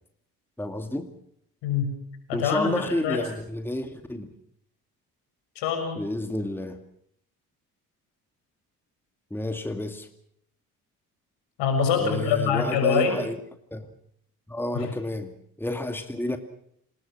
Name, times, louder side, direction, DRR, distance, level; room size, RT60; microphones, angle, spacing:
voice 1, 0.6-1.1 2.3-4.3 6.0-6.8 9.3-10.1 12.0-13.4 13.7-13.9 14.5-15.3 15.6-16.4, left 1 dB, 5° left, 7 dB, 2.3 m, -30 dB
voice 2, 1.6-2.0 2.3-3.2 5.5-6.0 11.6-13.2 14.7-14.9, left 6 dB, 65° left, 5 dB, 6.8 m, -25 dB
27.5 x 19.5 x 6.2 m, 0.72 s
figure-of-eight pair, 45°, 46 cm